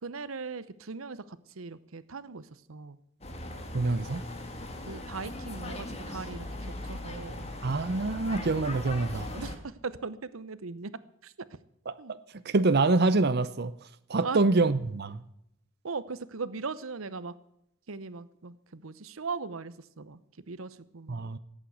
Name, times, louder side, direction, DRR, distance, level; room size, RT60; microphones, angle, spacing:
voice 1, 0.0-3.0 4.9-7.5 9.3-11.5 12.0-12.1 14.2-14.4 15.8-17.3 17.9-21.2, right 4 dB, 90° right, 0.8 m, -39 dB
sound 1, 3.2-9.6, left 1 dB, 30° left, 1.9 m, -39 dB
voice 2, 3.7-4.2 7.6-9.3 11.9-13.7 14.1-15.2 21.1-21.4, right 3 dB, 50° right, 0.7 m, -26 dB
16.5 x 8.8 x 8.0 m
head